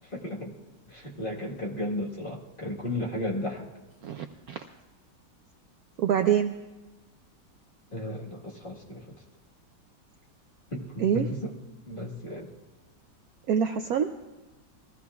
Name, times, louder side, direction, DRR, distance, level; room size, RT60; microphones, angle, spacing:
voice 1, 0.0-0.5 0.9-3.7 7.9-9.2 10.7-11.5 11.8-12.5, left 1 dB, 30° left, -2 dB, 1.5 m, -34 dB
voice 2, 4.0-4.6 6.0-6.5 11.0-11.3 13.5-14.1, right 8 dB, 70° right, 6 dB, 0.9 m, -25 dB
22.0 x 15.5 x 2.3 m, 1.1 s
omnidirectional pair, 2.0 m